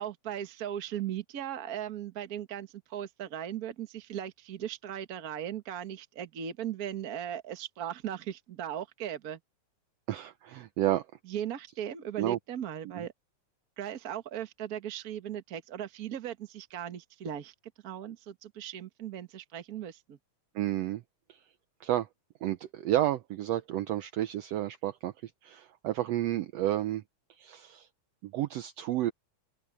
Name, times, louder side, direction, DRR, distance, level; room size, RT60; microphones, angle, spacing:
voice 1, 0.0-9.4 11.3-13.1 13.8-17.5 17.8-20.2, right 10 dB, 45° right, 1.3 m, -38 dB
voice 2, 10.1-11.1 12.2-12.4 13.0-13.1 20.5-21.0 21.3-21.4 21.8-22.1 22.4-27.0 27.4-27.9 28.2-29.1, right 13 dB, 75° right, 1.6 m, -31 dB
open air
omnidirectional pair, 3.4 m